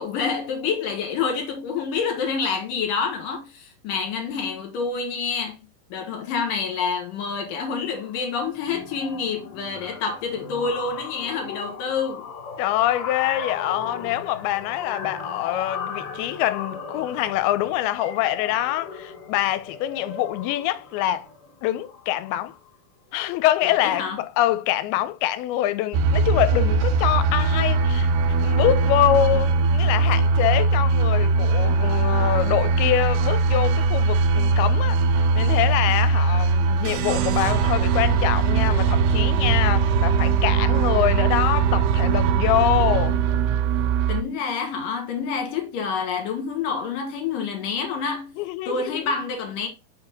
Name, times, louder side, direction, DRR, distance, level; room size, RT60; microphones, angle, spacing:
voice 1, 0.0-5.6 5.9-12.3 23.6-24.2 44.1-48.3 48.7-49.7, left 5 dB, 65° left, 2.5 m, -27 dB
sound 1, 6.7-7.0 7.3-7.5 7.8-22.7, left 6 dB, 50° left, 1.8 m, -37 dB
voice 2, 12.6-21.3 21.6-22.5 23.1-43.2 48.4-49.1, left 13 dB, 85° left, 2.4 m, -25 dB
sound 2, 25.9-44.2, right 4 dB, 85° right, 2.7 m, -20 dB
5.7 x 4.9 x 3.5 m
omnidirectional pair, 4.6 m